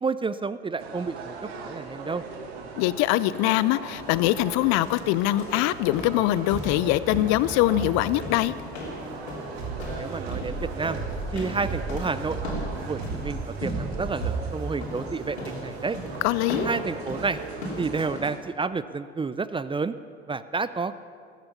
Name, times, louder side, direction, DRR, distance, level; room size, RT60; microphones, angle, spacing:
voice 1, 0.0-2.2 10.0-11.0 11.3-12.4 12.8-16.0 16.6-17.4 17.8-19.9 20.3-21.0, right 4 dB, 15° right, 14 dB, 0.5 m, -30 dB
sound 1, 0.8-18.4, right 4 dB, 75° right, 1.6 m, -40 dB
voice 2, 2.8-8.5 16.2-16.7, left 16 dB, 60° left, 17 dB, 0.6 m, -23 dB
sound 2, 3.9-18.2, equal, 85° left, 3.3 m, -37 dB
sound 3, 9.5-14.6, right 4 dB, 55° right, 2.5 m, -35 dB
14.5 x 14.0 x 6.9 m, 2.2 s
hypercardioid pair, 65°, 31 cm